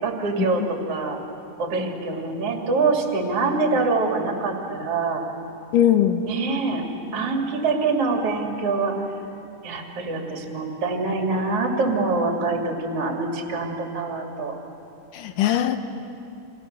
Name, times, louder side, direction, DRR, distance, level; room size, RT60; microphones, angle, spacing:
voice 1, 0.0-1.2 1.6-5.2 6.2-6.9 7.1-9.0 9.6-14.6, right 3 dB, 50° right, 1 dB, 3.5 m, -25 dB
voice 2, 5.7-6.2 15.1-15.8, left 11 dB, 80° left, 8 dB, 2.6 m, -19 dB
29.5 x 26.5 x 6.8 m, 2.7 s
omnidirectional pair, 3.7 m